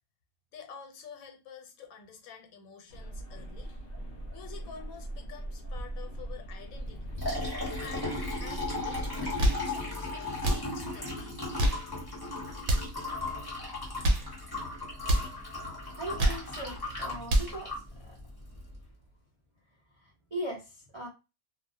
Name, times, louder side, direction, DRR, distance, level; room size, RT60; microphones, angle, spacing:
voice 1, 0.5-3.8 4.3-7.1 7.8-11.8, left 6 dB, 90° left, 1.1 m, -49 dB
sound 1, 2.9-9.3, right 1 dB, 50° left, 0.8 m, -40 dB
Liquid, 6.8-18.8, left 2 dB, 20° left, 0.8 m, -37 dB
sound 2, 9.2-9.7 10.3-10.7 11.4-11.9 12.6-13.0 13.8-14.3 15.0-15.3 16.0-16.5 17.1-17.6, right 1 dB, 80° right, 1.0 m, -27 dB
voice 2, 15.9-17.7 18.0-18.2 20.0-21.1, right 1 dB, 40° right, 0.4 m, -39 dB
2.4 x 2.0 x 2.6 m
omnidirectional pair, 1.5 m